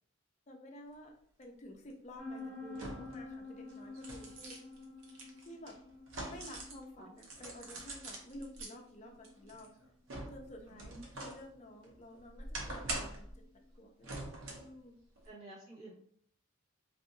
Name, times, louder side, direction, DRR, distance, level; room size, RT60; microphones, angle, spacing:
voice 1, 0.5-1.1 1.4-4.6 5.4-5.7 6.2-9.7 10.3-13.3 13.8-14.9, left 1 dB, 35° left, 2 dB, 0.5 m, -52 dB
sound 1, 1.4-1.5 2.7-3.2 3.7-6.8 7.2-8.7 9.2-11.4 11.8-13.3 14.0-14.7 15.2-15.3, right 2 dB, 75° right, 0.7 m, -44 dB
sound 2, 2.2-13.7, left 3 dB, 5° right, 0.7 m, -51 dB
voice 2, 10.7-11.1 15.2-15.9, right 2 dB, 50° right, -12 dB, 1.2 m, -52 dB
2.7 x 2.6 x 2.5 m, 0.62 s
head